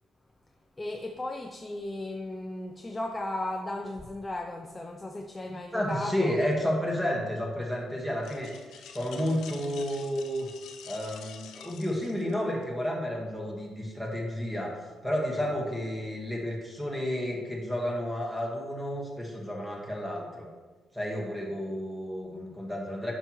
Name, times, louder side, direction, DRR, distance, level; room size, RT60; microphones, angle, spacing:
voice 1, 0.8-6.4, left 1 dB, 15° left, 3 dB, 0.4 m, -35 dB
voice 2, 5.7-8.5 8.9-10.5 10.8-14.8 15.0-20.5 20.9-23.1, equal, 5° right, -2 dB, 1.4 m, -31 dB
sound 1, 8.2-12.6, left 7 dB, 80° left, 0.6 m, -48 dB
9.7 x 6.2 x 3.0 m, 1.3 s
cardioid pair, 155°, 0 cm